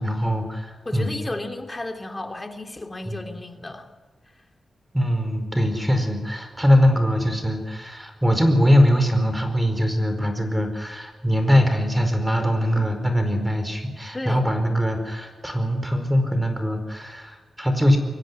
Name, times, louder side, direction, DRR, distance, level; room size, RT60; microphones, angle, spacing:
voice 1, 0.0-1.1 3.0-3.2 4.9-18.0, equal, 10° right, 7 dB, 4.8 m, -22 dB
voice 2, 0.8-3.9 14.1-14.4, left 2 dB, 25° left, 5 dB, 3.0 m, -33 dB
23.5 x 16.5 x 9.8 m, 1.3 s
cardioid pair, 75°, 0 cm